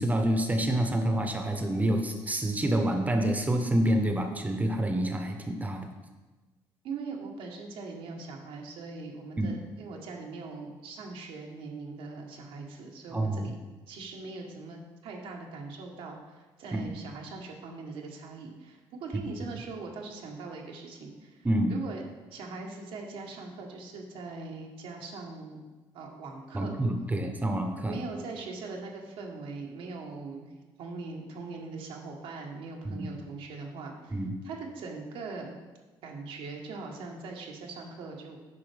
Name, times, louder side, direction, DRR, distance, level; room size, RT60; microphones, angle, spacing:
voice 1, 0.0-5.9 9.4-9.5 13.1-13.5 16.7-16.8 21.4-21.7 26.5-28.0 32.8-33.1 34.1-34.3, right 1 dB, 15° right, 5 dB, 0.9 m, -27 dB
voice 2, 6.8-13.6 13.9-22.0 22.3-25.7 25.9-26.7 27.9-30.5 30.8-34.2 34.4-35.5 36.0-38.4, right 3 dB, 80° right, 0 dB, 1.2 m, -41 dB
8.6 x 5.5 x 3.4 m, 1.2 s
cardioid pair, 95°, 9 cm